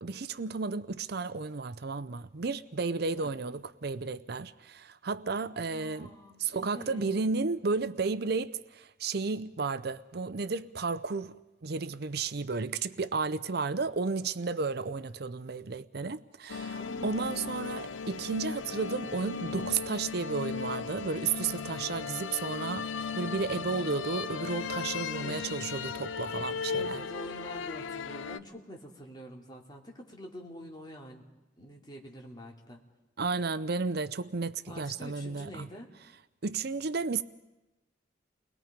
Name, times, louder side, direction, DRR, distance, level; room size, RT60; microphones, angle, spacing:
voice 1, 0.0-6.1 6.4-11.3 11.6-22.9 23.1-27.0 33.2-35.7 36.4-37.2, right 4 dB, 55° right, 0.6 m, -33 dB
voice 2, 5.7-7.3 16.8-17.8 25.2-25.6 26.7-31.3 31.6-32.8 34.7-35.9, equal, 25° left, 3.0 m, -46 dB
sound 1, 16.5-28.4, left 5 dB, 90° left, 0.6 m, -36 dB
30.0 x 21.0 x 5.2 m
head